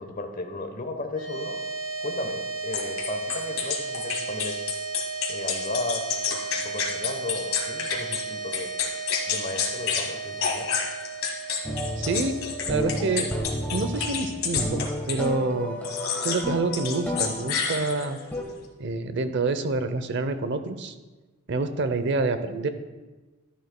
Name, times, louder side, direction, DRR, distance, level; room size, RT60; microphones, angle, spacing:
voice 1, 0.0-1.6 2.0-4.7 5.3-6.0 6.3-8.7 9.3-10.7, left 2 dB, 40° left, 4 dB, 0.9 m, -35 dB
sound 1, 1.1-15.5, right 4 dB, 20° right, 2.5 m, -35 dB
sound 2, 2.7-8.2 8.5-10.1 10.4-15.3 15.8-16.4 16.7-18.2, left 6 dB, 70° left, 1.7 m, -29 dB
sound 3, 11.6-18.4, equal, 10° left, 1.3 m, -32 dB
voice 2, 12.0-12.4 12.7-13.3 13.7-15.8 16.2-18.2 18.8-20.9 21.5-22.7, right 3 dB, 55° right, 10 dB, 0.7 m, -27 dB
12.5 x 10.5 x 2.2 m, 1.2 s
head